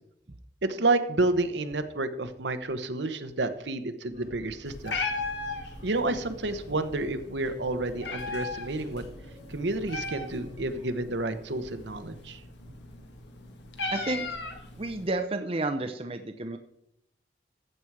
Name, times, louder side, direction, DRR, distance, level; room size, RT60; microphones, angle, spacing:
voice 1, 0.6-5.0 5.8-9.0 9.5-12.4, right 2 dB, 70° right, 9 dB, 1.0 m, -30 dB
sound 1, 4.1-10.9, equal, 50° left, 4.6 m, -49 dB
Meow, 4.6-15.1, left 3 dB, 70° left, 1.7 m, -38 dB
voice 2, 13.9-14.4 14.8-16.6, right 2 dB, 30° right, 6 dB, 0.6 m, -31 dB
14.5 x 8.0 x 4.8 m, 0.81 s
head